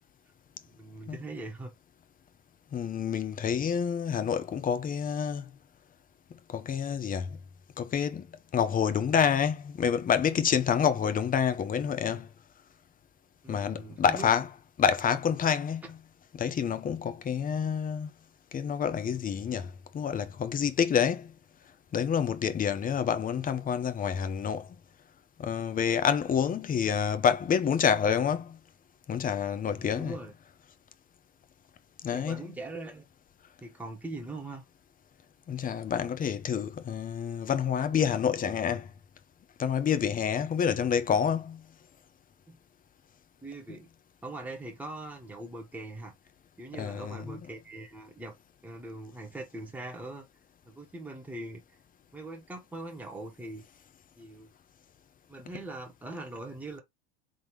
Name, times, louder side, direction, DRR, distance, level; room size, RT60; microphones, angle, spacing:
voice 1, 0.7-1.7 13.4-14.3 15.8-15.9 29.7-30.3 32.1-33.0 33.6-34.6 42.5-42.6 43.4-43.9 44.2-46.1 46.6-48.3 48.6-50.3 50.6-51.6 52.1-53.6 54.2-54.5 55.3-56.8, right 2 dB, 5° right, 1.4 m, -41 dB
voice 2, 2.7-5.5 6.5-7.4 7.8-8.3 8.5-12.3 13.5-14.5 14.8-15.8 16.3-18.1 18.5-21.3 21.9-24.7 25.4-28.6 29.1-30.1 32.0-32.5 35.5-38.9 39.6-41.6 46.7-47.4, left 7 dB, 25° left, 0.8 m, -28 dB
3.7 x 3.6 x 3.1 m
supercardioid pair, 115°, 33 cm